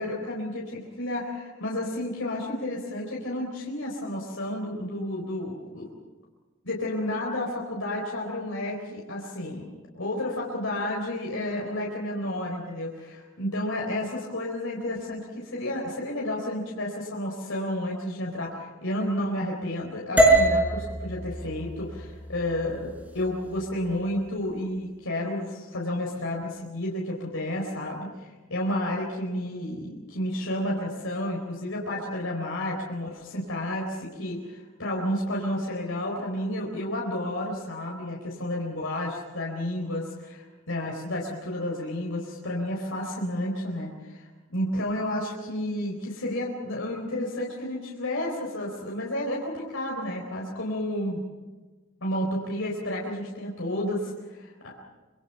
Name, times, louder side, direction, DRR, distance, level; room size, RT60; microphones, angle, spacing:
voice 1, 0.0-5.9 6.6-9.6 9.9-51.2 52.0-54.8, left 1 dB, 75° left, -2 dB, 4.3 m, -31 dB
sound 1, 20.2-24.3, right 1 dB, 10° right, 4.8 m, -25 dB
26.5 x 24.0 x 5.7 m, 1.2 s
head